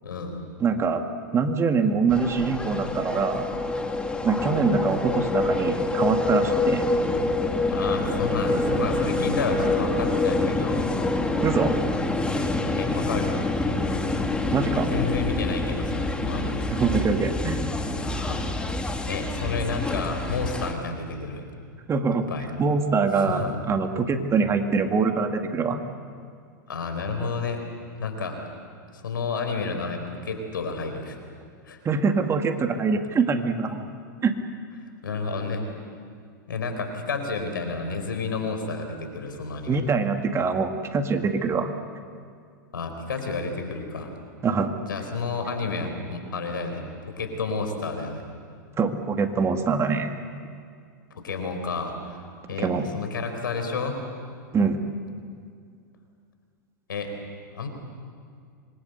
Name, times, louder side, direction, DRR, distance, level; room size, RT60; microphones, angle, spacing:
voice 1, 0.0-0.4 6.8-6.9 7.6-11.4 12.8-14.1 14.7-16.7 18.0-18.7 19.0-21.4 22.3-22.5 23.1-23.5 26.7-27.6 28.0-28.4 28.9-31.2 31.7-31.8 35.0-35.6 36.5-39.8 42.7-44.1 44.9-46.8 47.2-48.2 51.1-52.2 52.5-54.0 56.9-57.1 57.5-57.7, left 4 dB, 90° left, 6 dB, 4.5 m, -31 dB
voice 2, 0.6-1.0 1.3-3.5 4.2-6.8 11.4-11.8 14.5-14.9 16.4-17.6 21.9-22.3 22.6-25.8 31.8-33.9 34.2-34.4 39.7-41.7 44.4-44.7 48.8-50.1 52.6-52.9 54.5-54.8, right 5 dB, 25° right, 6 dB, 2.1 m, -24 dB
sound 1, 2.1-20.7, left 2 dB, 10° left, 2.2 m, -26 dB
26.5 x 22.0 x 8.0 m, 2.2 s
hypercardioid pair, 110°, 11 cm